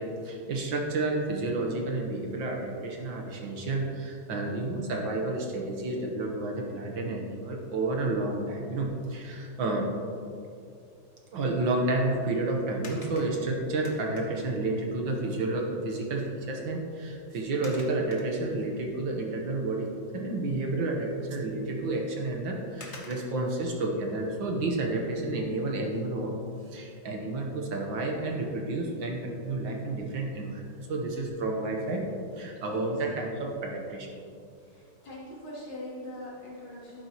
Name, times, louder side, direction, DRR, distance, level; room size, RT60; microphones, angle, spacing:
voice 1, 0.0-9.9 11.3-19.9 20.1-26.3 26.7-32.0 32.4-34.2, right 2 dB, 65° right, 1 dB, 1.8 m, -30 dB
sound 1, 12.8-14.7 15.9-16.0 16.4-16.6 17.6-18.8 19.3-19.4 21.8-21.9 22.8-23.5 25.8-26.2 26.7-26.8, left 2 dB, 40° left, 1.1 m, -48 dB
voice 2, 34.6-37.1, left 1 dB, 65° left, -7 dB, 3.5 m, -42 dB
12.0 x 9.6 x 3.0 m, 2.4 s
omnidirectional pair, 2.4 m